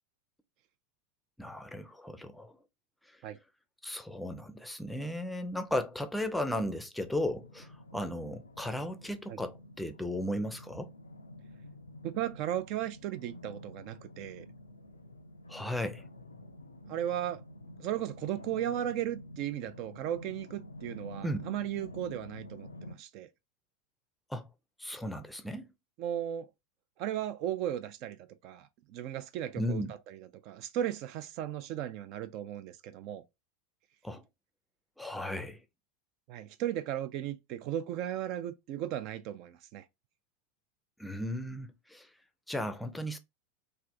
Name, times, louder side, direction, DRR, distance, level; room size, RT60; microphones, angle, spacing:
voice 1, 1.4-2.6 3.1-3.2 3.8-10.9 15.5-16.0 21.2-21.5 24.3-24.5 24.8-25.7 29.6-29.9 34.0-34.2 35.0-35.6 41.0-42.1 42.5-43.2, left 1 dB, 5° left, 0.5 m, -35 dB
sound 1, 7.1-23.0, left 1 dB, 90° left, 0.3 m, -49 dB
voice 2, 12.0-14.5 16.9-17.4 17.8-23.3 26.0-26.5 27.0-28.2 28.4-33.2 36.3-39.8, right 11 dB, 50° right, 0.4 m, -36 dB
3.3 x 2.5 x 2.5 m
figure-of-eight pair, 85°, 0 cm